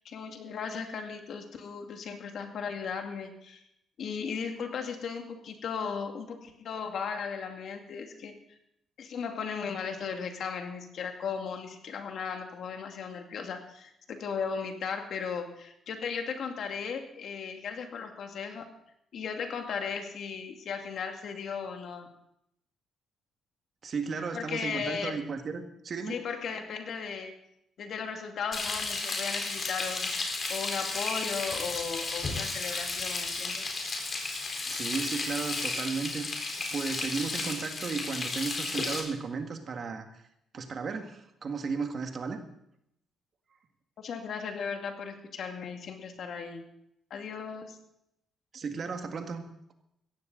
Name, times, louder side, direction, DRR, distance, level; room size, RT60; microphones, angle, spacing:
voice 1, 0.0-3.6 4.0-8.3 9.0-18.6 19.1-22.1 24.3-25.2 26.1-27.3 27.8-33.6 44.0-46.6 47.1-47.8, left 6 dB, 65° left, 4 dB, 2.2 m, -36 dB
voice 2, 23.8-26.2 34.7-36.4 36.7-40.1 40.5-42.4 48.5-49.5, right 5 dB, 50° right, 5 dB, 1.9 m, -34 dB
Frying (food), 28.5-39.0, left 3 dB, 40° left, 4.3 m, -33 dB
17.0 x 14.0 x 4.0 m, 0.78 s
cardioid pair, 90°, 0 cm